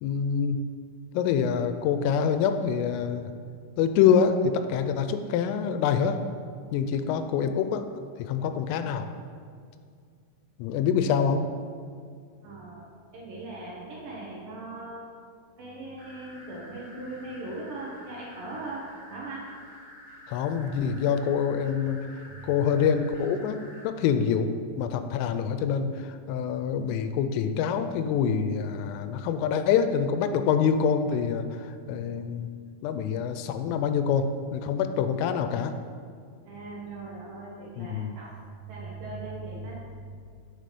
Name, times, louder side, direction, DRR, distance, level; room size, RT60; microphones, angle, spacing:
voice 1, 0.0-0.6 1.1-3.3 3.8-6.2 6.7-7.8 8.2-9.0 10.6-11.4 20.3-32.5 32.8-35.7 37.8-38.2 39.6-39.7, left 7 dB, 85° left, 8 dB, 3.1 m, -26 dB
voice 2, 12.4-15.2 15.6-19.6 22.3-22.6 36.4-40.2, right 2 dB, 70° right, -4 dB, 2.1 m, -40 dB
sound 1, 16.0-23.9, equal, 55° left, 1.3 m, -49 dB
7.5 x 6.9 x 5.3 m, 2.2 s
omnidirectional pair, 5.7 m